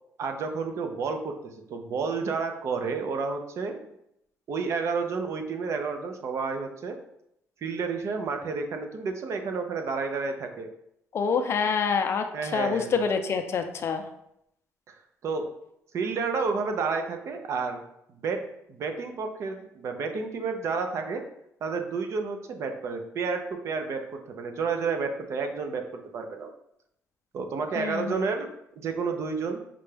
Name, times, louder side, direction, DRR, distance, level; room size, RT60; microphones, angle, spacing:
voice 1, 0.2-3.8 4.5-7.0 7.6-10.7 12.3-13.0 14.9-15.0 15.2-15.5 15.9-17.8 18.2-18.4 18.7-21.2 21.6-25.8 26.1-26.5 27.3-29.6, right 4 dB, 60° right, 5 dB, 0.5 m, -30 dB
voice 2, 11.1-14.0 27.8-28.2, left 5 dB, 50° left, 6 dB, 0.4 m, -27 dB
5.1 x 2.2 x 3.3 m, 0.78 s
cardioid pair, 110°, 6 cm